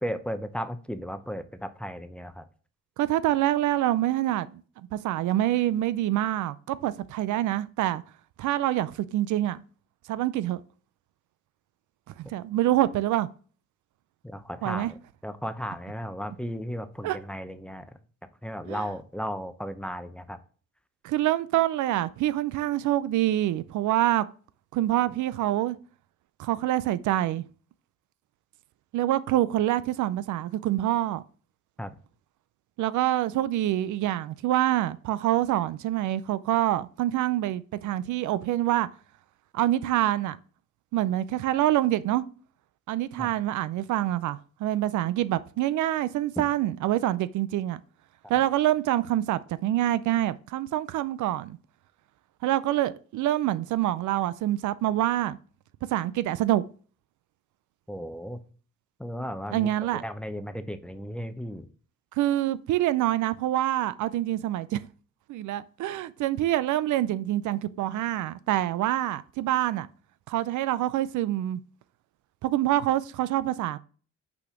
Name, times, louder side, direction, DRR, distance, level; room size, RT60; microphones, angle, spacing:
voice 1, 0.0-2.4 14.2-15.0 15.2-17.9 18.4-20.4 31.8-31.9 43.2-43.3 57.9-58.4 59.0-59.7 60.0-61.7, equal, 5° left, 0.7 m, -35 dB
voice 2, 3.0-4.6 4.9-8.0 8.4-9.6 10.1-10.6 12.2-13.3 14.6-14.9 17.0-17.2 18.7-18.9 21.0-24.2 24.7-25.8 26.4-27.4 28.9-31.2 32.8-38.9 39.5-40.4 40.9-42.2 42.9-47.8 48.3-51.6 52.4-55.4 55.9-56.6 59.5-60.0 62.2-64.8 65.3-69.9 70.3-71.6 72.4-73.8, right 14 dB, 75° right, 0.5 m, -26 dB
5.8 x 4.2 x 5.9 m
cardioid pair, 90°, 30 cm